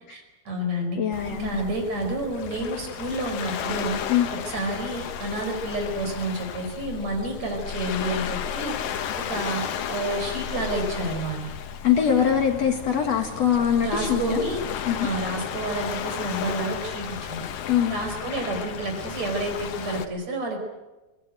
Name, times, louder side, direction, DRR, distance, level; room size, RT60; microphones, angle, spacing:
voice 1, 0.1-1.0 1.3-4.0 4.5-8.8 9.3-9.6 9.9-11.4 13.8-14.6 15.0-17.4 17.9-20.6, right 1 dB, 50° right, 4 dB, 5.9 m, -29 dB
voice 2, 1.0-1.5 4.1-4.3 11.8-14.4 14.8-15.1 17.7-18.0, left 8 dB, 55° left, 5 dB, 2.6 m, -22 dB
Waves surf, 1.1-20.1, left 8 dB, 85° left, 3.2 m, -33 dB
24.0 x 20.0 x 9.1 m, 1.1 s
omnidirectional pair, 3.9 m